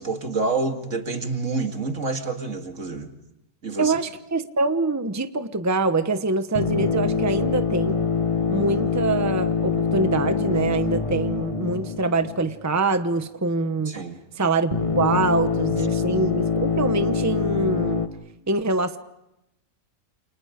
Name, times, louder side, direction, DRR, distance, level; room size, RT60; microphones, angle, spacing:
voice 1, 0.0-3.1 3.6-4.0 13.9-14.2, right 3 dB, 70° right, 5 dB, 2.4 m, -28 dB
voice 2, 3.8-8.0 8.5-13.9 14.3-18.0 18.5-19.0, right 3 dB, 15° right, 9 dB, 1.0 m, -24 dB
sound 1, 6.5-12.9 14.7-18.1, left 5 dB, 25° left, 1.3 m, -24 dB
29.0 x 29.0 x 5.1 m, 0.86 s
omnidirectional pair, 1.4 m